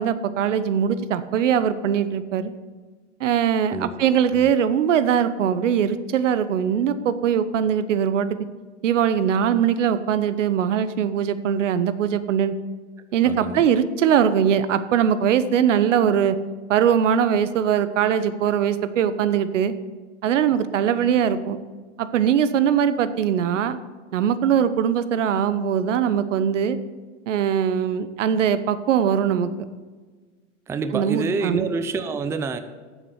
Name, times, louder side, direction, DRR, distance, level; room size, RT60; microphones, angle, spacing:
voice 1, 0.0-2.5 3.2-8.3 8.8-12.5 13.1-16.4 16.7-19.7 20.2-21.6 22.0-23.8 24.1-26.8 27.3-29.5 30.9-31.7, right 8 dB, 80° right, 13 dB, 1.0 m, -21 dB
voice 2, 3.7-4.5 13.3-13.7 30.7-32.6, right 4 dB, 10° right, 10 dB, 0.4 m, -28 dB
9.2 x 7.9 x 8.0 m, 1.4 s
hypercardioid pair, 130°, 36 cm